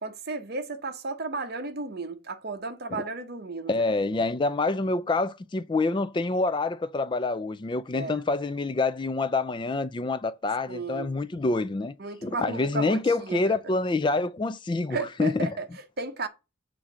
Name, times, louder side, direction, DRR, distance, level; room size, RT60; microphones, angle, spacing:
voice 1, 0.0-3.8 7.9-8.2 10.7-11.1 12.0-13.6 14.9-16.3, right 3 dB, 50° right, 1.0 m, -34 dB
voice 2, 3.7-11.9 12.2-15.5, left 3 dB, 25° left, 0.3 m, -27 dB
7.2 x 3.8 x 6.1 m
head